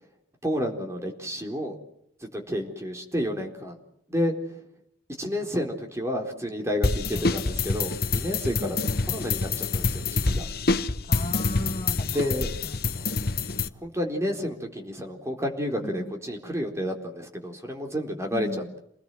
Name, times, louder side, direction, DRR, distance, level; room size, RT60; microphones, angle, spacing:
voice 1, 0.4-1.8 2.3-3.8 4.1-4.6 5.2-10.4 12.1-12.5 12.8-12.9 13.8-18.8, equal, 15° right, 3 dB, 4.1 m, -30 dB
sound 1, 6.8-13.7, left 3 dB, 55° left, 1.2 m, -27 dB
voice 2, 8.6-9.0 11.1-12.3 12.6-13.1 15.8-16.1 18.3-18.7, left 1 dB, 35° left, 5 dB, 2.1 m, -37 dB
28.5 x 20.0 x 7.9 m, 0.73 s
head